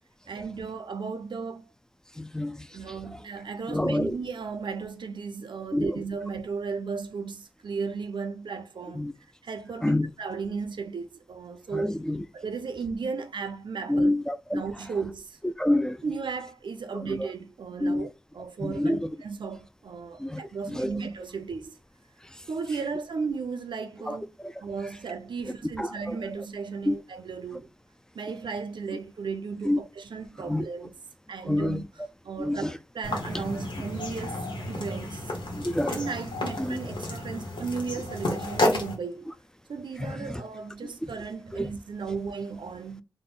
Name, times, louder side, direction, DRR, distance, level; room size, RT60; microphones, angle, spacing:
voice 1, 0.3-1.7 2.7-9.1 9.4-11.9 12.3-14.1 14.5-15.4 16.0-21.7 22.5-24.2 24.6-27.7 28.1-31.0 31.3-31.8 32.2-34.4 34.7-35.3 35.9-39.4 39.7-43.0, right 5 dB, 85° right, 0.5 m, -35 dB
voice 2, 2.2-2.6 3.7-4.1 5.7-5.9 8.9-9.1 9.8-10.1 11.7-12.2 13.9-14.6 15.4-16.0 17.0-17.2 17.8-18.1 18.6-19.1 20.2-20.9 24.1-24.2 25.8-26.2 26.9-27.0 29.7-29.8 30.5-30.7 31.5-31.8 32.4-32.7 35.6-36.0 36.6-36.8 40.0-40.4 41.5-41.7, left 1 dB, 10° left, 0.3 m, -27 dB
sound 1, 33.0-38.9, left 1 dB, 85° left, 1.0 m, -31 dB
3.8 x 2.1 x 3.8 m
wide cardioid pair, 60°, 8 cm